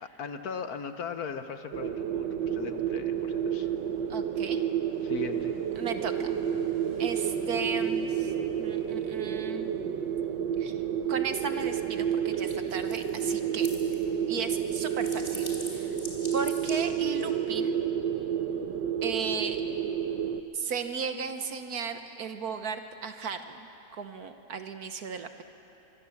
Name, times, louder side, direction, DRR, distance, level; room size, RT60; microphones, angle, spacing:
voice 1, 0.0-3.7 5.0-5.6, left 6 dB, 60° left, 8 dB, 1.3 m, -39 dB
sound 1, 0.8-15.0, equal, 85° left, 6.2 m, -55 dB
sound 2, 1.7-20.4, right 8 dB, 75° right, 1.6 m, -30 dB
voice 2, 4.1-4.6 5.8-6.4 7.0-8.3 8.6-9.7 10.6-10.8 11.1-13.7 14.3-16.0 16.3-17.8 19.0-19.6 20.5-25.4, right 5 dB, 60° right, 8 dB, 1.4 m, -35 dB
sound 3, 12.3-14.1 14.4-17.3, left 2 dB, 35° left, 4.0 m, -44 dB
25.0 x 23.0 x 7.2 m, 3.0 s
omnidirectional pair, 2.0 m